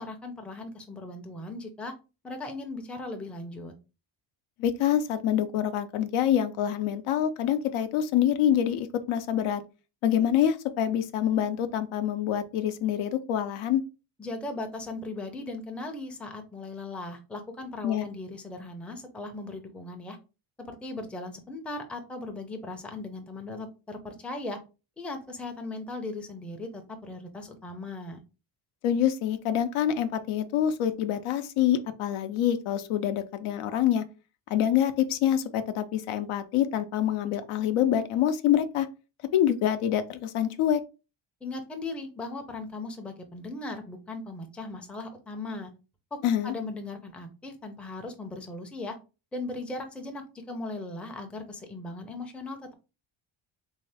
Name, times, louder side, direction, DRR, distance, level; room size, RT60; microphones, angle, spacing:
voice 1, 0.0-1.9 2.2-3.7 14.2-20.2 20.7-24.6 25.0-28.2 41.4-45.7 46.1-46.2 46.4-49.0 49.3-52.7, left 2 dB, 5° left, 0.4 m, -38 dB
voice 2, 4.6-9.6 10.0-13.8 17.8-18.0 28.8-34.0 34.5-38.9 39.3-40.8 46.2-46.5, left 10 dB, 85° left, 0.6 m, -26 dB
3.5 x 2.8 x 3.3 m
cardioid pair, 135°, 48 cm